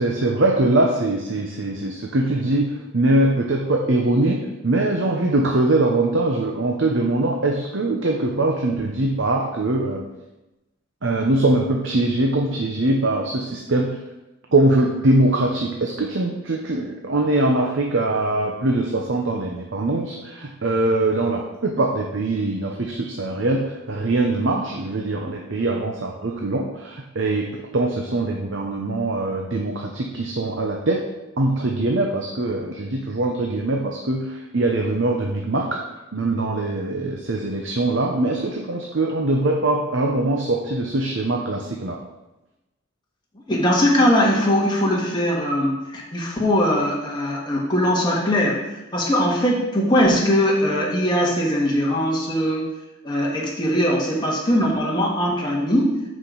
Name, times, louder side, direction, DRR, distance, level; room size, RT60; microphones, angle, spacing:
voice 1, 0.0-10.1 11.0-14.0 14.5-31.0 31.4-35.8 36.1-42.0, right 2 dB, 60° right, 1 dB, 0.8 m, -22 dB
voice 2, 43.5-52.6 53.0-56.0, equal, 20° left, -3 dB, 1.6 m, -20 dB
11.5 x 5.1 x 3.9 m, 1.0 s
head